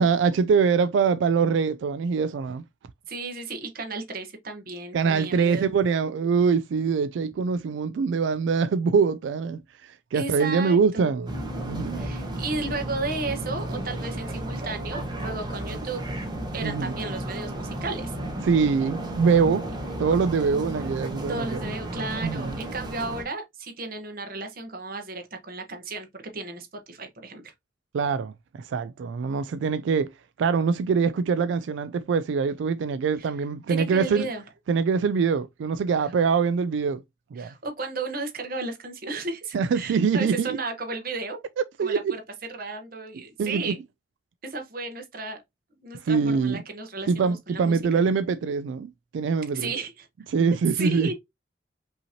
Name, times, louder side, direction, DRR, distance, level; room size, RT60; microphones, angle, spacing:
voice 1, 0.0-2.6 4.9-11.3 11.6-12.1 16.6-16.9 18.4-19.6 20.0-21.6 22.2-22.6 27.9-30.1 30.4-34.3 34.7-37.0 37.3-37.5 39.5-40.6 41.8-42.1 43.4-43.7 46.0-46.6 47.1-49.7 50.3-51.1, right 5 dB, 90° right, 0.3 m, -24 dB
voice 2, 3.1-5.7 10.1-11.1 12.0-16.0 16.5-18.1 21.3-27.5 33.2-33.3 33.7-34.4 37.4-41.4 41.8-42.2 42.6-43.8 44.4-45.4 45.8-47.8 49.5-50.1 50.7-51.1, right 3 dB, 50° right, 1.1 m, -34 dB
sound 1, 11.3-23.2, right 1 dB, 25° right, 1.0 m, -33 dB
5.4 x 2.9 x 2.8 m
head